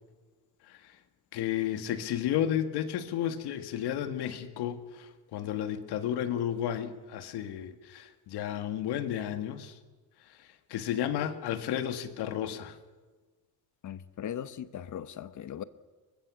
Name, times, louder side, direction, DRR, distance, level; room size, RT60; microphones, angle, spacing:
voice 1, 1.3-9.7 10.7-12.8, left 10 dB, 75° left, 1.8 m, -32 dB
voice 2, 13.8-15.6, left 10 dB, 45° left, 1.0 m, -39 dB
23.5 x 20.5 x 6.2 m
cardioid pair, 110°, 41 cm